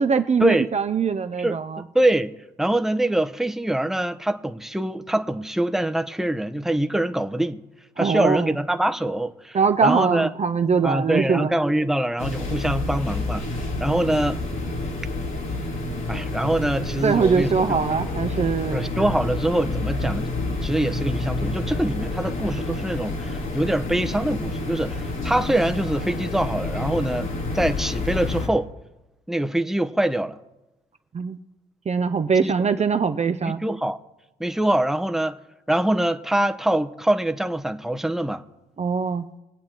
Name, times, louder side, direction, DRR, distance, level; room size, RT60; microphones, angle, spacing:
voice 1, 0.0-1.8 8.0-8.5 9.5-11.5 17.0-18.9 31.1-31.4 31.9-33.6 38.8-39.3, right 5 dB, 35° right, 0.6 m, -22 dB
voice 2, 1.9-2.3 2.6-7.6 8.0-10.3 10.8-14.4 16.1-17.8 18.7-20.3 20.6-28.7 29.3-30.4 32.4-32.5 33.4-34.0 34.4-35.4 35.7-38.4, right 1 dB, ahead, 0.8 m, -24 dB
sound 1, 12.2-28.5, left 2 dB, 75° left, 2.8 m, -28 dB
22.0 x 8.7 x 2.9 m
hypercardioid pair, 40°, 21 cm